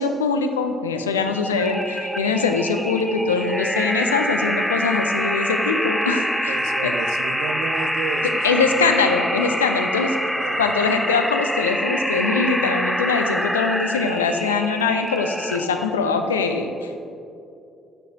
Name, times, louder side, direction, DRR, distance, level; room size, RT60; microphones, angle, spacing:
voice 1, 0.0-6.9 8.4-10.2 10.6-17.0, left 4 dB, 80° left, 6 dB, 0.4 m, -22 dB
sound 1, 1.3-15.9, equal, ahead, 0.5 m, -26 dB
voice 2, 6.5-8.9 10.4-10.7, right 6 dB, 65° right, 8 dB, 0.4 m, -32 dB
9.0 x 6.5 x 2.7 m, 2.6 s
figure-of-eight pair, 45°, 0 cm